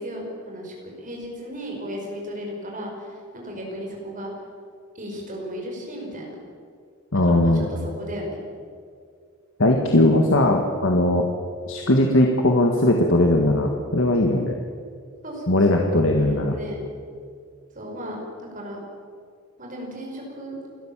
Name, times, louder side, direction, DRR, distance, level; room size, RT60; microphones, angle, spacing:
voice 1, 0.0-4.3 5.0-6.4 7.3-7.6 8.0-8.4 15.2-16.8 17.8-18.2 18.5-18.8 19.6-20.5, equal, 35° right, -1 dB, 5.3 m, -35 dB
voice 2, 7.1-7.7 9.6-11.3 11.7-14.6 15.5-16.5, left 1 dB, 60° left, 2 dB, 1.7 m, -19 dB
28.5 x 13.0 x 7.4 m, 2.2 s
head